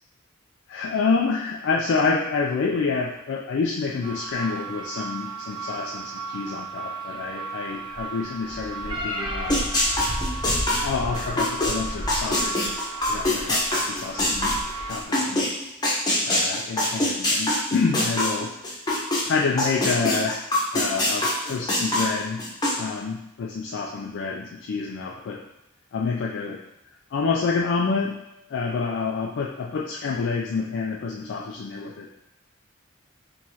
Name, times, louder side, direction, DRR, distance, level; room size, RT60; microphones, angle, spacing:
voice 1, 0.7-9.7 10.8-12.7 13.1-14.6 14.8-15.5 16.2-18.5 19.2-22.4 22.8-25.5 25.9-26.6 27.1-28.2 28.5-32.1, left 4 dB, 60° left, -1 dB, 0.3 m, -28 dB
sound 1, 4.0-15.0, right 2 dB, 20° right, 0.5 m, -33 dB
sound 2, 9.5-15.5 15.8-19.2 19.6-22.7, left 1 dB, 20° left, 0.8 m, -23 dB
4.6 x 3.0 x 2.8 m, 0.85 s
head